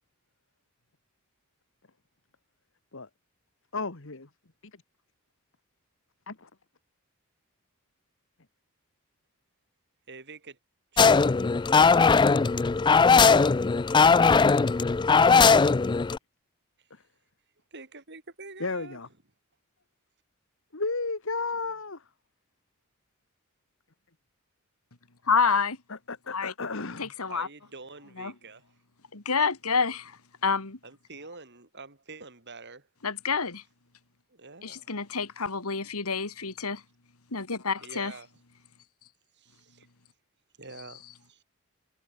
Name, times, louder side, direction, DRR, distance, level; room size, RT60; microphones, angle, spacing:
voice 1, 3.7-4.3 6.3-6.5 16.9-17.0 18.6-19.1 20.7-22.0 25.9-27.1, left 3 dB, 60° left, 1.9 m, -33 dB
voice 2, 10.1-10.6 10.9-11.4 17.7-19.0 27.2-28.6 30.8-32.9 34.3-35.0 37.8-38.3 39.3-39.9 40.6-41.4, right 3 dB, 50° right, 5.6 m, -46 dB
sound 1, 11.0-16.2, left 5 dB, 20° left, 0.3 m, -19 dB
voice 3, 25.3-25.8 26.3-26.5 27.0-27.5 28.2-28.3 29.1-30.8 33.0-33.6 34.6-36.8 37.3-38.1, left 5 dB, 80° left, 2.4 m, -28 dB
head